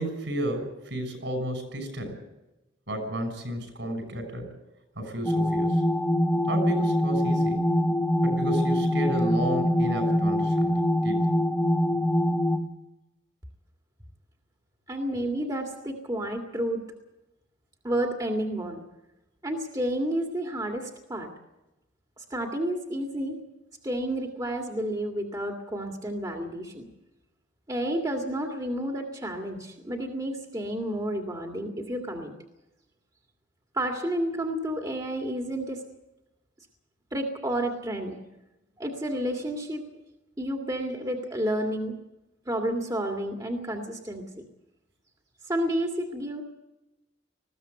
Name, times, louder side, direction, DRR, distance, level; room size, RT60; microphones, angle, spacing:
voice 1, 0.0-2.1 2.9-4.5 5.0-5.8 6.5-7.7 8.2-11.3, right 1 dB, 70° right, 6 dB, 6.3 m, -32 dB
sound 1, 5.2-12.6, left 1 dB, 10° left, 1.2 m, -24 dB
voice 2, 14.9-16.8 17.8-18.8 19.4-21.3 22.2-23.4 23.8-26.9 27.7-32.3 33.7-35.8 37.1-38.2 38.8-39.9 40.4-42.0 42.5-44.4 45.5-46.4, right 1 dB, 20° right, 1 dB, 2.1 m, -30 dB
20.5 x 15.5 x 8.1 m, 0.97 s
head